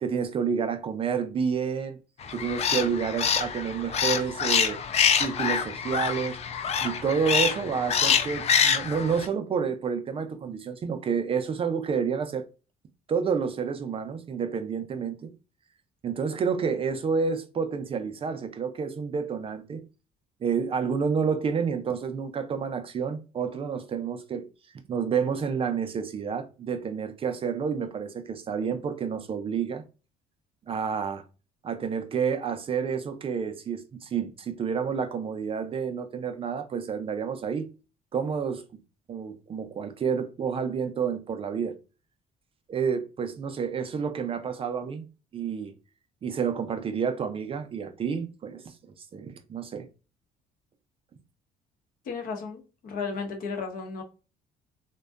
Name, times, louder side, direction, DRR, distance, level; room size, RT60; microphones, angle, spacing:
voice 1, 0.0-2.0 2.3-4.8 5.2-6.4 6.8-12.4 13.1-15.3 16.0-19.8 20.4-24.5 24.9-29.8 30.7-31.2 31.6-37.7 38.1-38.6 39.1-41.8 42.7-45.0 45.3-45.7 46.2-49.9, right 6 dB, 35° right, 0.4 m, -29 dB
sound 1, 2.2-9.3, left 7 dB, 40° left, 0.4 m, -26 dB
voice 2, 52.0-54.0, left 5 dB, 60° left, 0.7 m, -34 dB
2.6 x 2.1 x 2.3 m
cardioid pair, 110°, 17 cm